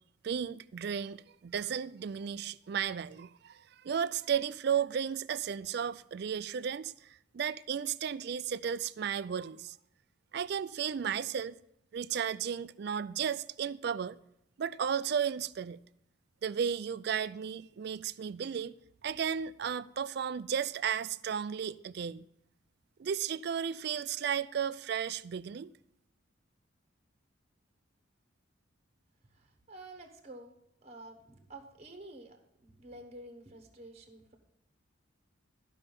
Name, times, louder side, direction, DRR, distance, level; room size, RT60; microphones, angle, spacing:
voice 1, 0.2-9.8 10.3-11.5 11.9-14.2 14.6-15.8 16.4-18.7 19.0-22.2 23.0-25.7, right 7 dB, 50° right, 0.3 m, -34 dB
voice 2, 29.3-30.6 30.8-34.4, right 2 dB, 30° right, 1.1 m, -50 dB
13.0 x 5.5 x 5.3 m
head